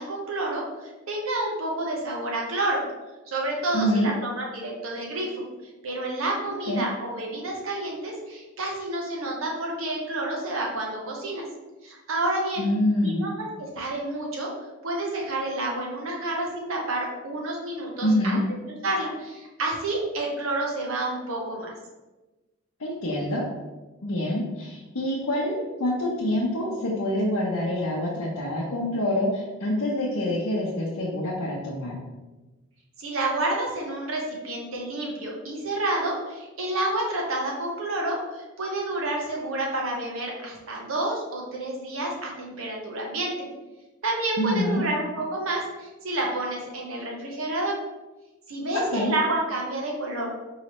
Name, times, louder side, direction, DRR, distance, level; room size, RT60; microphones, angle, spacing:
voice 1, 0.0-2.9 3.3-5.4 5.8-11.4 11.8-12.6 13.0-14.5 14.8-18.4 18.7-21.7 33.0-43.5 44.0-47.8 48.5-50.3, right 2 dB, 70° right, -1 dB, 1.0 m, -29 dB
voice 2, 3.7-4.1 6.7-6.8 12.6-13.2 18.0-18.4 22.8-23.5 24.0-32.0 44.4-44.8 48.7-49.1, left 1 dB, 85° left, -5 dB, 0.7 m, -26 dB
4.7 x 3.1 x 3.0 m, 1.2 s
head